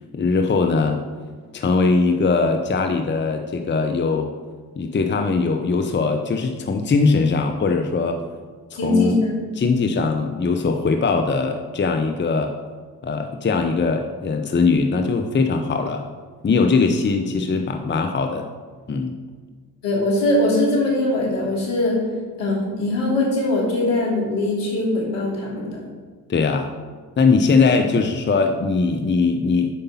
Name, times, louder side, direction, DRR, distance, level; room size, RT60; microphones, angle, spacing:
voice 1, 0.1-1.0 1.5-4.3 4.8-8.2 8.7-9.2 9.6-12.5 13.0-16.1 16.4-18.4 18.9-19.2 26.3-26.7 27.2-29.7, left 4 dB, 25° left, 5 dB, 0.8 m, -20 dB
voice 2, 8.7-9.4 19.8-22.0 22.4-25.8, left 2 dB, 70° left, -3 dB, 2.8 m, -21 dB
8.4 x 5.2 x 5.6 m, 1.5 s
hypercardioid pair, 50°, 43 cm